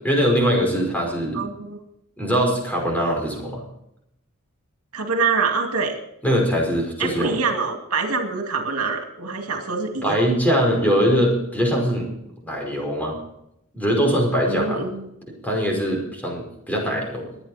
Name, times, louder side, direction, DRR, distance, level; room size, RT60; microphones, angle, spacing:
voice 1, 0.0-1.4 2.2-3.6 6.2-7.4 10.0-12.1 12.4-13.2 13.7-14.8 15.4-17.3, equal, 5° left, 0 dB, 5.2 m, -22 dB
voice 2, 1.3-1.8 4.9-6.0 7.0-10.2 14.4-15.1, right 4 dB, 85° right, 4 dB, 2.4 m, -25 dB
23.0 x 9.1 x 4.3 m, 0.78 s
head